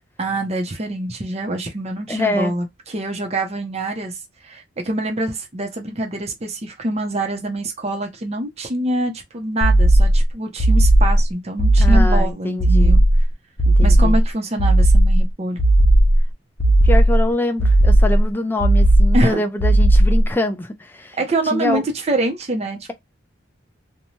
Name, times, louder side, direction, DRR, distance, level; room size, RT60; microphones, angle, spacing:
voice 1, 0.2-13.0 13.8-15.6 19.1-19.4 21.2-22.9, right 1 dB, 35° right, 0.6 m, -25 dB
voice 2, 2.1-2.5 11.8-13.0 13.7-14.2 16.8-21.2 21.4-21.8, left 1 dB, 10° left, 0.4 m, -24 dB
sound 1, 9.6-10.2 10.6-11.2 11.6-12.2 12.6-13.2 13.6-14.2 14.6-15.2 15.6-16.2 16.6-17.2 17.6-18.2 18.6-19.2 19.6-20.2, right 1 dB, 65° left, 0.7 m, -14 dB
2.7 x 2.2 x 3.0 m
head